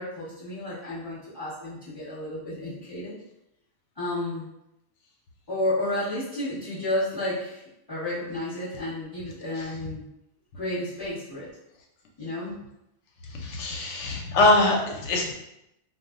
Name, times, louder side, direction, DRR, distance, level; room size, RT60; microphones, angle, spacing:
voice 1, 0.0-3.2 4.0-4.5 5.5-7.6 7.9-10.1 10.5-11.5 12.2-12.6, left 1 dB, 20° left, -10 dB, 0.8 m, -31 dB
voice 2, 13.3-15.3, left 2 dB, 65° left, 1 dB, 0.8 m, -23 dB
2.4 x 2.0 x 3.5 m, 0.86 s
omnidirectional pair, 1.4 m